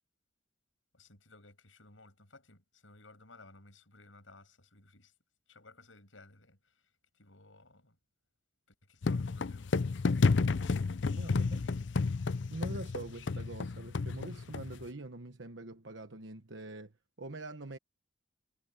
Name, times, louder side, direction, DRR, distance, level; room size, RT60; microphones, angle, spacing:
voice 1, 0.9-5.1 5.5-8.0 8.7-10.0 11.1-12.1, left 2 dB, 80° left, 7.3 m, -58 dB
sound 1, 9.0-14.8, left 4 dB, 65° left, 0.5 m, -31 dB
voice 2, 11.2-11.6 12.5-16.9 17.2-17.8, right 2 dB, 65° right, 1.2 m, -44 dB
head